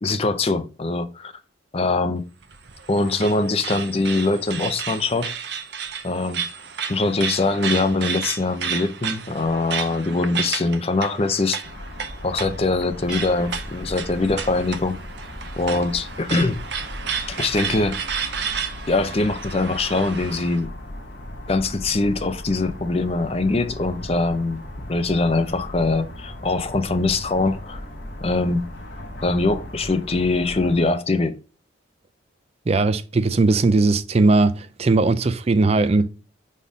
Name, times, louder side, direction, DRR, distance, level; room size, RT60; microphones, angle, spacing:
voice 1, 0.0-1.3 1.7-2.2 2.9-5.3 6.0-6.4 6.9-11.6 12.2-15.0 15.6-16.6 17.3-18.0 18.9-20.7 21.5-24.6 24.9-27.8 28.2-28.7 29.2-31.4, left 3 dB, 30° left, 0.5 m, -22 dB
sound 1, 2.4-20.6, right 7 dB, 55° right, 0.7 m, -32 dB
sound 2, 11.6-30.9, left 1 dB, 60° left, 1.7 m, -37 dB
Cat, 13.0-18.0, right 1 dB, 5° right, 2.6 m, -44 dB
voice 2, 32.7-36.1, right 3 dB, 30° right, 0.4 m, -18 dB
5.3 x 4.2 x 4.7 m
head